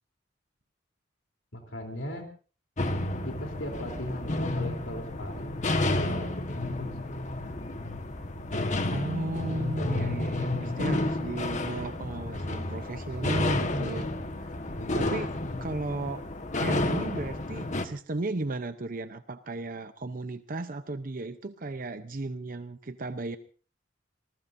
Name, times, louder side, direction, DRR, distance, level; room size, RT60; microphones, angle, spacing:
voice 1, 1.5-2.2 3.3-7.4 13.4-14.3 14.8-15.3, equal, 80° left, 2 dB, 3.6 m, -38 dB
sound 1, 2.8-17.9, left 2 dB, 40° left, 1.4 m, -31 dB
voice 2, 8.9-14.1 14.4-14.5 14.9-15.3 15.6-16.2 16.6-23.4, right 2 dB, 50° right, 10 dB, 0.8 m, -35 dB
27.0 x 20.0 x 2.7 m, 0.39 s
head